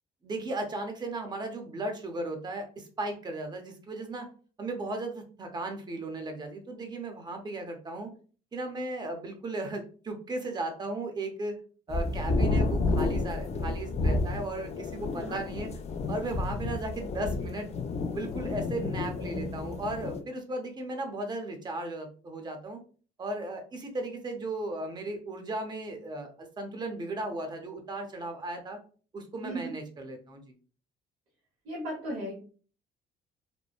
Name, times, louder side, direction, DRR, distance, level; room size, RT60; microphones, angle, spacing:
voice 1, 0.2-4.3 4.6-8.1 8.5-11.6 11.9-15.7 16.1-17.7 18.1-22.8 23.2-26.3 26.6-28.8 29.1-30.5, right 2 dB, 25° right, 4 dB, 0.6 m, -36 dB
sound 1, 11.9-20.2, left 2 dB, 40° left, 0.3 m, -31 dB
voice 2, 15.2-15.5 29.4-29.7 31.6-32.3, right 1 dB, 85° right, -5 dB, 1.1 m, -36 dB
3.0 x 2.1 x 2.3 m, 0.40 s
cardioid pair, 110°, 17 cm